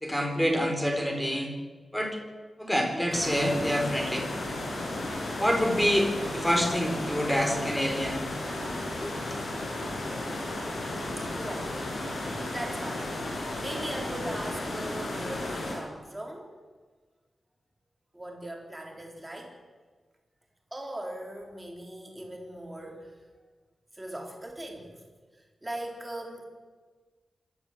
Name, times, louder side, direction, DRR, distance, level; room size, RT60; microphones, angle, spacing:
voice 1, 0.0-1.5 1.9-2.2 2.6-4.3 5.4-8.3 9.0-9.4, equal, 5° left, 2 dB, 4.2 m, -27 dB
sound 1, 3.1-15.7, left 1 dB, 60° left, 7.7 m, -34 dB
voice 2, 11.3-11.8 12.2-16.5 18.1-19.5 20.7-23.1 23.9-25.0 25.3-26.4, right 1 dB, 10° right, 0 dB, 4.1 m, -40 dB
26.5 x 13.5 x 7.9 m, 1.4 s
wide cardioid pair, 170°, 0 cm